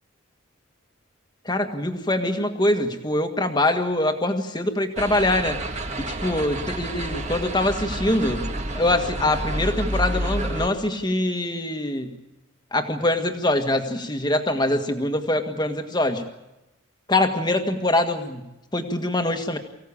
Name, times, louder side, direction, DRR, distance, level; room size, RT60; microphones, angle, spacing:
voice 1, 1.4-5.6 6.0-12.1 12.7-16.2 17.1-18.5 18.7-19.6, left 1 dB, 20° left, 6 dB, 1.6 m, -24 dB
sound 1, 5.0-10.7, right 1 dB, 35° right, 1.8 m, -29 dB
24.0 x 16.5 x 8.6 m, 0.95 s
head